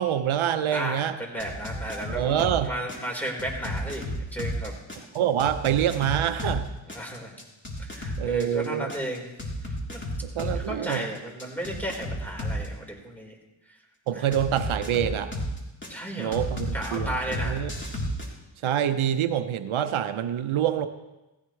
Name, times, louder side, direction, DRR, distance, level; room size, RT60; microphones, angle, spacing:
voice 1, 0.0-1.2 2.1-2.7 5.1-6.7 8.2-8.9 10.2-11.1 14.1-15.3 16.2-17.7 18.6-20.9, right 10 dB, 85° right, 10 dB, 0.8 m, -26 dB
voice 2, 0.7-2.4 2.6-4.0 4.3-4.7 6.9-7.4 7.8-9.3 9.6-10.0 10.4-13.4 14.1-14.2 15.9-16.4 16.7-17.6, right 1 dB, 5° left, -1 dB, 4.4 m, -34 dB
sound 1, 1.4-2.6 2.9-6.6 6.9-10.6 10.9-12.7 14.3-15.9 16.3-18.3, left 1 dB, 25° left, 3.6 m, -32 dB
18.0 x 16.0 x 3.2 m, 1.0 s
cardioid pair, 65°, 47 cm